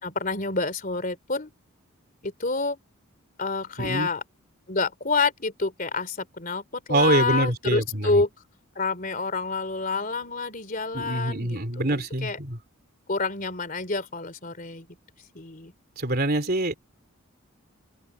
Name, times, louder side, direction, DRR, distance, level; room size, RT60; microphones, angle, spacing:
voice 1, 0.0-1.5 2.2-2.8 3.4-4.2 4.7-8.3 8.7-12.4 13.1-14.9 15.3-15.7, left 3 dB, 40° left, 3.2 m, -28 dB
voice 2, 3.8-4.1 6.9-8.2 10.9-12.6 16.0-16.7, right 1 dB, 45° right, 3.5 m, -25 dB
open air
head